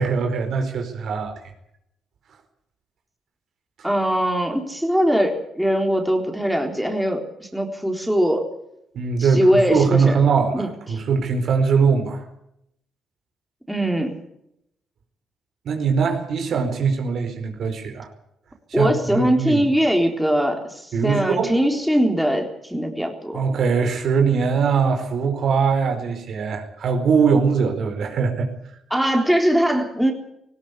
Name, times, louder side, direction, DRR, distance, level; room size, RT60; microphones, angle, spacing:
voice 1, 0.0-1.3 8.9-12.2 15.6-18.1 18.7-19.6 20.9-21.5 23.3-28.5, right 5 dB, 65° right, 5 dB, 4.6 m, -21 dB
voice 2, 3.8-8.5 9.2-10.2 10.5-11.0 13.7-14.2 18.7-23.4 28.9-30.1, equal, ahead, 2 dB, 3.9 m, -21 dB
19.0 x 17.0 x 8.3 m, 0.78 s
cardioid pair, 90°, 0 cm